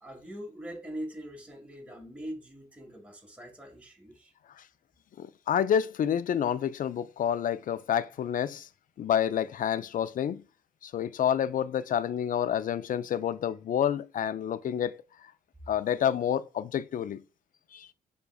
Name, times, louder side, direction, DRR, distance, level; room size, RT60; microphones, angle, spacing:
voice 1, 0.0-4.3, equal, 5° right, 1.6 m, -42 dB
voice 2, 5.2-8.7 9.0-10.4 10.8-15.0 15.7-17.2 17.7-17.9, left 9 dB, 50° left, 0.4 m, -28 dB
6.8 x 2.3 x 2.3 m
hypercardioid pair, 45°, 18 cm